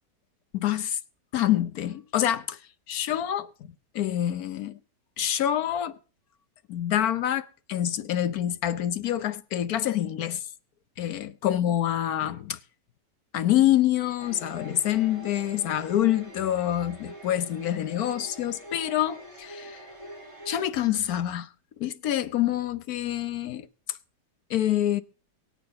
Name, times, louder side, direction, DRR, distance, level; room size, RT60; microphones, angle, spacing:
voice 1, 0.5-1.0 1.3-2.6 2.9-3.5 3.9-4.8 5.2-6.0 6.7-10.4 11.0-12.6 13.3-19.8 20.5-21.5 21.8-24.0 24.5-25.0, left 12 dB, 65° left, 1.2 m, -26 dB
sound 1, 14.2-20.6, equal, 15° right, 4.0 m, -44 dB
23.0 x 8.4 x 3.9 m
omnidirectional pair, 1.8 m